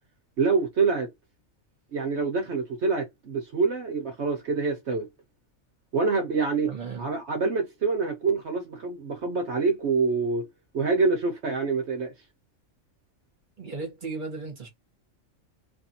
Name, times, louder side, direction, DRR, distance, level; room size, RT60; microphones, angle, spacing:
voice 1, 0.4-1.1 1.9-5.1 5.9-6.7 7.0-10.5 10.7-12.1, right 4 dB, 60° right, 1.1 m, -26 dB
voice 2, 6.6-7.1 13.6-14.7, right 4 dB, 40° right, 1.3 m, -35 dB
3.2 x 2.6 x 2.8 m
omnidirectional pair, 1.4 m